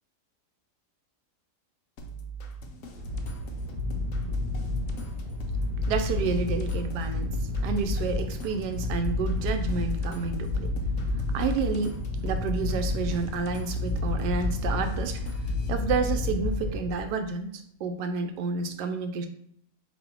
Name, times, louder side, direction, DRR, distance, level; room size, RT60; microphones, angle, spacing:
sound 1, 2.0-15.7, right 3 dB, 60° left, 0.9 m, -42 dB
sound 2, 2.9-17.2, left 2 dB, 55° right, 0.6 m, -30 dB
voice 1, 5.9-7.4 7.6-10.7 11.3-12.0 12.2-15.2 15.7-19.3, right 5 dB, 85° right, 7 dB, 1.2 m, -30 dB
4.1 x 2.8 x 4.5 m, 0.69 s
omnidirectional pair, 1.7 m